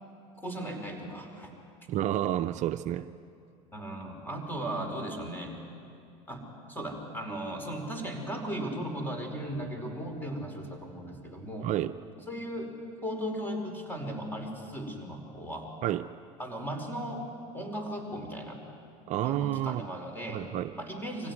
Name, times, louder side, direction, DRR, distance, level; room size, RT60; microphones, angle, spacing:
voice 1, 0.4-1.5 3.7-5.6 6.3-11.7 12.3-12.7 13.0-15.7 16.4-17.3 17.5-18.6 19.2-20.4 20.8-21.3, right 1 dB, 10° left, 3 dB, 5.1 m, -37 dB
voice 2, 1.9-3.1 11.6-11.9 15.8-16.1 19.1-19.8 20.3-20.7, right 13 dB, 50° right, 11 dB, 0.6 m, -30 dB
24.5 x 16.5 x 9.7 m, 2.5 s
hypercardioid pair, 85°, 16 cm